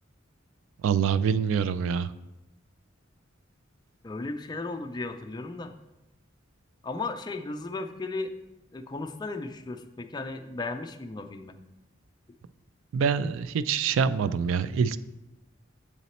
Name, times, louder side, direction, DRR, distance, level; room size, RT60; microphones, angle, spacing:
voice 1, 0.8-2.1 12.9-15.0, right 6 dB, 75° right, 15 dB, 0.3 m, -25 dB
voice 2, 4.0-5.7 6.8-8.3 8.7-11.6, left 3 dB, 20° left, 6 dB, 0.4 m, -35 dB
7.2 x 4.1 x 4.2 m, 0.99 s
head